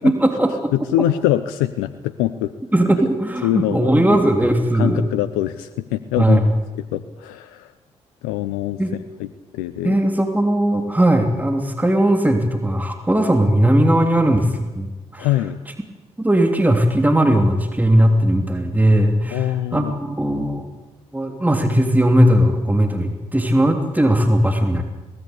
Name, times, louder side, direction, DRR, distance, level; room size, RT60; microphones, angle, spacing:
voice 1, 0.0-0.7 2.7-5.0 6.2-6.5 8.8-8.9 9.8-14.9 15.1-15.3 16.2-20.7 21.1-24.8, right 1 dB, 10° right, 4 dB, 3.2 m, -18 dB
voice 2, 0.7-2.5 3.4-4.2 4.7-6.4 6.8-7.7 8.2-8.8 9.2-9.3 9.5-10.0 15.2-15.6 19.3-19.9, left 13 dB, 85° left, 13 dB, 0.7 m, -23 dB
23.0 x 18.5 x 8.3 m, 1.1 s
hypercardioid pair, 45°, 14 cm